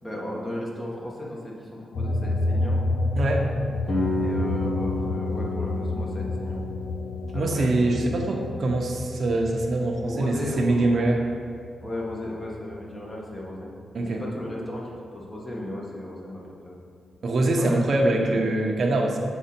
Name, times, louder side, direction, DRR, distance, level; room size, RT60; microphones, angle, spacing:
voice 1, 0.0-2.8 4.2-6.6 7.3-8.2 10.0-11.3 11.8-13.7 14.0-16.8 17.6-17.8 18.1-18.5, left 1 dB, 20° left, -4 dB, 1.6 m, -35 dB
sound 1, 1.9-12.8 13.2-14.7, left 2 dB, 80° left, 0.6 m, -30 dB
voice 2, 3.1-3.5 7.3-11.2 13.9-14.2 17.2-19.2, right 2 dB, 60° right, 1 dB, 0.8 m, -23 dB
sound 2, 3.9-9.6, left 2 dB, 60° left, 1.4 m, -32 dB
6.9 x 4.2 x 4.4 m, 2.3 s
cardioid pair, 75°, 0 cm